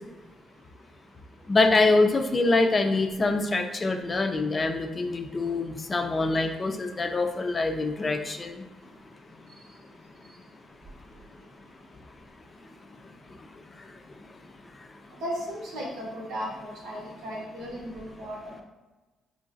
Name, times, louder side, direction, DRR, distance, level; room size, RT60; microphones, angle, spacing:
voice 1, 1.5-8.6, left 3 dB, 30° left, 5 dB, 0.4 m, -24 dB
voice 2, 15.2-18.6, equal, 90° right, -3 dB, 1.1 m, -36 dB
3.8 x 3.1 x 2.5 m, 1.2 s
cardioid pair, 90°, 0 cm